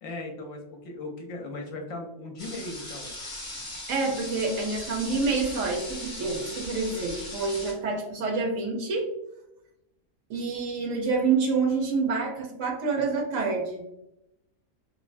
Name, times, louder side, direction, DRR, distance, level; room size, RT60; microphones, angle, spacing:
voice 1, 0.0-3.1, left 2 dB, 70° left, 2 dB, 1.0 m, -38 dB
sound 1, 2.4-7.7, left 1 dB, 30° left, 0.7 m, -39 dB
voice 2, 3.9-9.1 10.3-13.8, right 4 dB, 70° right, 1 dB, 0.9 m, -27 dB
3.2 x 2.1 x 2.4 m, 0.86 s
omnidirectional pair, 1.5 m